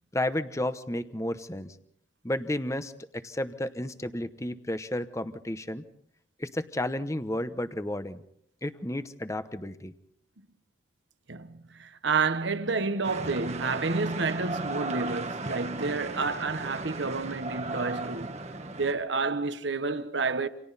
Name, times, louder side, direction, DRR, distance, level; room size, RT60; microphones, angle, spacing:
voice 1, 0.1-1.7 2.2-5.8 6.4-8.2 8.6-9.9, left 1 dB, 15° left, 1.0 m, -32 dB
voice 2, 11.3-18.4 18.8-20.5, right 4 dB, 70° right, 1.3 m, -29 dB
sound 1, 13.0-18.9, right 3 dB, 35° right, 1.3 m, -36 dB
29.0 x 27.0 x 4.2 m
head